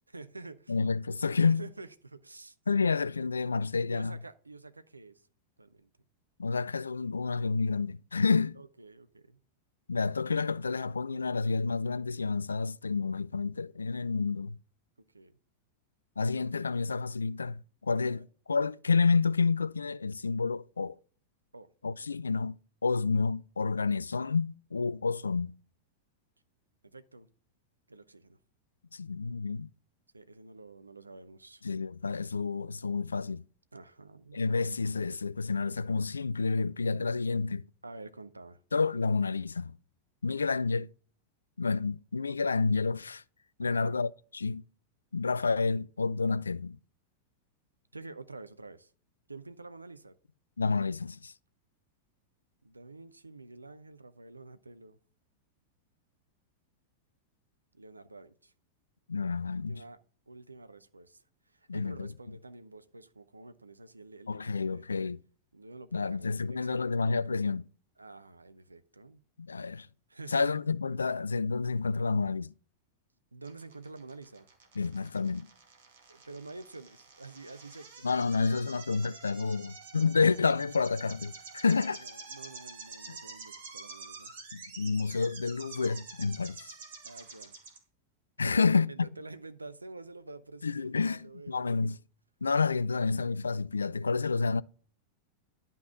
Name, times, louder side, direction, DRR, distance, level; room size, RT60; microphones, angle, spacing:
voice 1, 0.1-0.8 1.4-2.9 3.8-5.3 5.6-5.9 8.6-9.4 15.1-15.4 18.1-18.2 21.5-22.2 26.8-27.3 27.9-28.4 30.1-31.6 33.7-34.4 37.8-38.6 43.6-44.0 47.9-48.9 49.3-50.2 52.6-55.0 57.7-58.5 59.5-60.0 60.3-64.9 65.5-66.9 68.0-69.2 70.1-70.6 73.3-74.5 76.1-78.1 81.7-84.3 87.0-87.6 88.4-91.9, right 3 dB, 80° right, 0.6 m, -48 dB
voice 2, 0.7-1.7 2.7-4.2 6.4-8.6 9.9-14.6 16.2-21.0 21.8-22.6 22.8-25.5 28.9-29.7 31.6-33.4 34.3-37.6 38.7-39.8 40.2-40.9 41.6-43.2 43.6-44.6 45.1-46.8 50.6-51.3 59.1-59.8 61.7-62.1 64.3-65.2 65.9-67.6 69.4-69.9 70.3-72.5 74.8-75.5 78.0-82.0 83.1-83.2 84.5-86.7 88.4-88.9 90.6-92.0 92.4-94.6, left 4 dB, 75° left, 0.3 m, -29 dB
sound 1, 73.4-87.8, right 4 dB, 60° right, 2.3 m, -48 dB
11.5 x 5.4 x 3.7 m
figure-of-eight pair, 90°, 0 cm